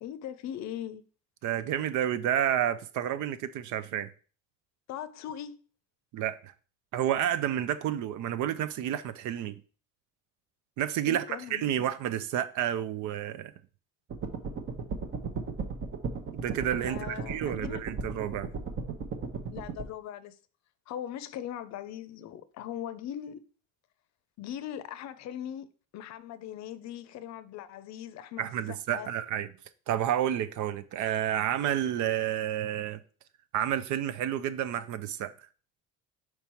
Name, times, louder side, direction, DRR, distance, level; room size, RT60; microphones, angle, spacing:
voice 1, 0.0-1.0 4.9-5.6 11.1-11.9 16.9-17.8 19.5-20.4 20.9-23.4 24.4-29.1, left 10 dB, 60° left, 0.6 m, -40 dB
voice 2, 1.4-4.1 6.1-6.5 6.9-9.5 10.8-13.5 16.3-18.5 28.4-29.5 29.9-33.0 33.5-35.3, right 10 dB, 65° right, 0.6 m, -30 dB
sound 1, 14.1-19.8, right 5 dB, 40° right, 0.9 m, -36 dB
5.5 x 4.6 x 4.4 m
cardioid pair, 145°, 31 cm